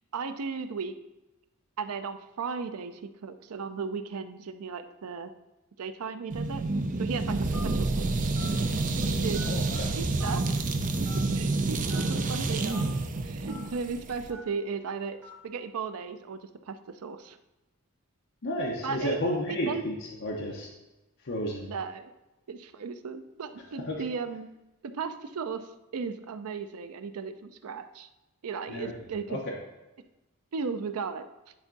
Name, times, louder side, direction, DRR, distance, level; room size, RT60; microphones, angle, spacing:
voice 1, 0.1-0.9 1.8-5.3 5.8-6.6 7.0-7.4 7.6-8.1 8.9-9.4 9.9-10.4 11.3-12.9 13.2-15.2 15.4-17.4 18.8-19.2 19.5-19.8 21.7-22.1 22.5-24.5 24.9-28.1 28.4-29.4 30.5-31.2, right 5 dB, 90° right, 9 dB, 0.5 m, -36 dB
sound 1, 6.3-14.3, right 2 dB, 35° right, 0.5 m, -29 dB
Telephone, 7.5-7.8 8.3-8.5 9.3-9.7 10.2-10.3 11.0-11.2 11.9-12.0 12.7-12.8 13.5-13.6 14.3-14.5 15.2-15.4, left 1 dB, 10° right, 1.4 m, -44 dB
voice 2, 9.4-9.8 18.4-19.9 20.2-20.7 21.3-21.7 23.8-24.0 28.7-28.9 29.3-29.4, left 1 dB, 55° left, -2 dB, 0.9 m, -31 dB
9.6 x 3.5 x 3.9 m, 1.0 s
head